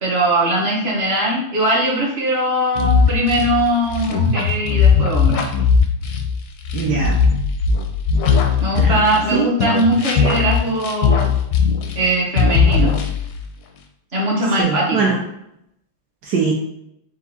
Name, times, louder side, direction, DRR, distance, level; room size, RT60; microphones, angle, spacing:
voice 1, 0.0-5.5 8.6-11.3 11.9-13.0 14.1-15.1, right 1 dB, 40° right, -3 dB, 0.9 m, -20 dB
sound 1, 2.8-9.3 9.6-12.1 12.4-13.4, left 5 dB, 75° left, 0.9 m, -18 dB
voice 2, 6.7-7.2 8.8-8.9 9.3-9.5 14.6-15.2 16.2-16.5, right 5 dB, 70° right, -1 dB, 0.9 m, -21 dB
4.6 x 2.4 x 4.1 m, 0.80 s
omnidirectional pair, 2.3 m